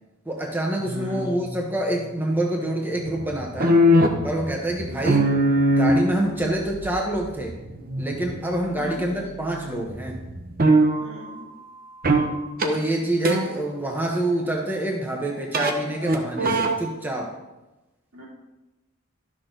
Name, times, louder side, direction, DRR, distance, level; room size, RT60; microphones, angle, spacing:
voice 1, 0.3-3.8 4.2-5.3 5.7-7.6 8.0-10.2 12.6-17.3, right 1 dB, 10° right, 0 dB, 0.9 m, -26 dB
sound 1, 0.8-2.1 3.0-9.6 9.9-11.1 12.0-12.3 12.6-12.7 13.2-13.5 15.5-15.7 16.0-16.7, right 1 dB, 45° right, 0.8 m, -22 dB
voice 2, 0.9-1.2 4.9-5.2 8.8-9.1 11.0-11.5 18.1-18.3, left 1 dB, 80° right, -5 dB, 3.4 m, -39 dB
12.0 x 6.2 x 3.9 m, 1.0 s
head